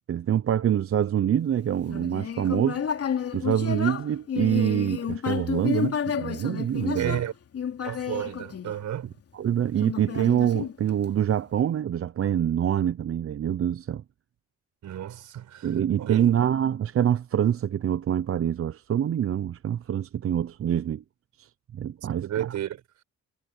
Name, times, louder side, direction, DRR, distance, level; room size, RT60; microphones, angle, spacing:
voice 1, 0.1-2.9 3.3-7.2 9.3-14.0 15.6-21.0 21.4-22.5, right 10 dB, 50° right, 0.8 m, -25 dB
Human voice, 1.9-9.2 9.8-11.2, left 8 dB, 50° left, 3.1 m, -31 dB
voice 2, 7.0-7.3 7.8-9.1 14.8-16.3 22.2-22.8, right 11 dB, 70° right, 4.9 m, -32 dB
cardioid pair, 90°, 30 cm